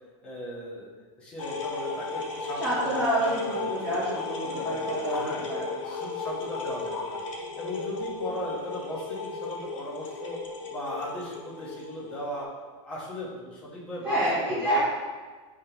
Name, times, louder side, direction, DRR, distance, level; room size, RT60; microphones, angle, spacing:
voice 1, 0.2-0.9 1.2-4.0 4.4-7.2 7.5-10.4 10.7-12.5 12.8-14.8, equal, 5° left, -9 dB, 1.3 m, -38 dB
sound 1, 1.4-12.4, left 3 dB, 90° left, 1.6 m, -35 dB
voice 2, 2.6-5.6 14.0-14.8, right 1 dB, 15° right, -13 dB, 1.7 m, -28 dB
8.6 x 3.6 x 3.0 m, 1.4 s
supercardioid pair, 155°, 16 cm